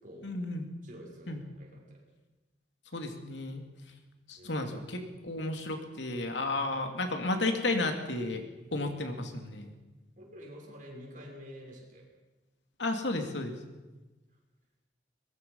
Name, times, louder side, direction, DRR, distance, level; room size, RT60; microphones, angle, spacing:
voice 1, 0.2-0.7 1.3-1.4 2.9-3.6 4.3-8.4 8.7-9.7 12.8-13.5, left 2 dB, 85° left, 5 dB, 2.8 m, -33 dB
voice 2, 0.8-2.0 4.4-4.7 10.2-12.1, equal, 50° right, -1 dB, 6.2 m, -48 dB
22.5 x 20.5 x 5.6 m, 1.1 s
head